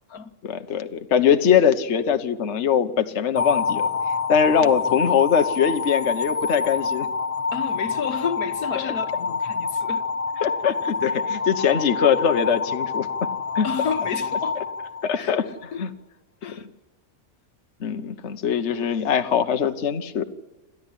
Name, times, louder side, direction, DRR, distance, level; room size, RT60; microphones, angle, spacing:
voice 1, 0.4-3.9 4.3-7.1 10.4-13.1 13.5-13.7 15.0-15.4 15.8-15.9 17.8-20.2, left 8 dB, 50° left, 1.4 m, -22 dB
sound 1, 3.4-15.5, left 5 dB, 30° left, 0.7 m, -27 dB
voice 2, 4.6-5.0 7.5-10.0 13.6-14.6 15.2-15.9 16.4-16.7, left 6 dB, 75° left, 1.7 m, -31 dB
28.0 x 13.5 x 10.0 m
omnidirectional pair, 1.6 m